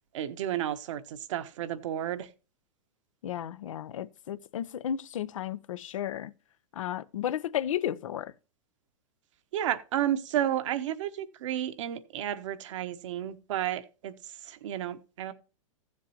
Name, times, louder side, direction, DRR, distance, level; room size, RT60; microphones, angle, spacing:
voice 1, 0.1-2.3 9.5-15.3, right 11 dB, 65° right, 1.1 m, -32 dB
voice 2, 3.2-6.3 6.7-8.3, left 10 dB, 70° left, 0.7 m, -33 dB
15.0 x 7.4 x 2.9 m
hypercardioid pair, 110°, 17 cm